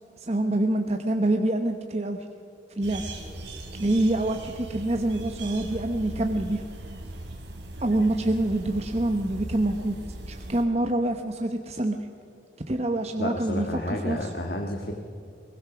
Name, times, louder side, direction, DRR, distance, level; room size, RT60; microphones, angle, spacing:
voice 1, 0.2-2.2 2.8-3.0 3.8-6.6 7.8-10.0 10.3-12.1 12.7-14.2, right 1 dB, 35° right, 5 dB, 0.9 m, -26 dB
sound 1, 2.8-10.6, right 1 dB, 85° right, 3.0 m, -39 dB
voice 2, 13.2-14.9, left 1 dB, 60° left, 2 dB, 1.7 m, -31 dB
21.5 x 20.0 x 6.1 m, 2.6 s
head